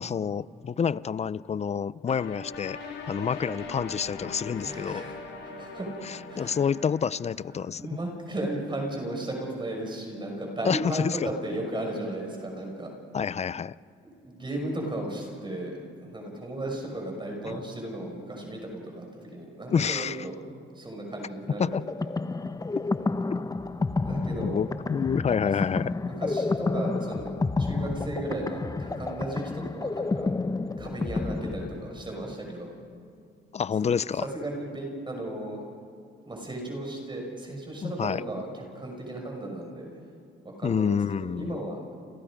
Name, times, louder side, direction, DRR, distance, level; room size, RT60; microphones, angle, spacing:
voice 1, 0.0-2.8 3.1-5.0 6.4-7.8 10.6-11.3 13.1-13.7 19.7-20.2 21.6-21.9 24.4-25.9 33.5-34.3 37.8-38.2 40.6-41.6, left 7 dB, 35° left, 19 dB, 0.5 m, -28 dB
sound 1, 2.1-7.2, left 3 dB, 85° left, 4.7 m, -40 dB
voice 2, 4.5-5.2 5.4-5.9 6.3-6.7 7.5-12.9 14.2-20.4 20.7-21.9 24.0-24.6 26.1-27.3 27.6-30.3 30.8-32.7 34.2-35.6 36.3-39.9 40.4-40.9 41.2-41.8, right 1 dB, 25° right, 1 dB, 6.1 m, -35 dB
sound 2, 21.7-32.2, left 3 dB, 20° left, 0.9 m, -30 dB
29.5 x 28.0 x 5.1 m, 2.3 s
cardioid pair, 90°, 20 cm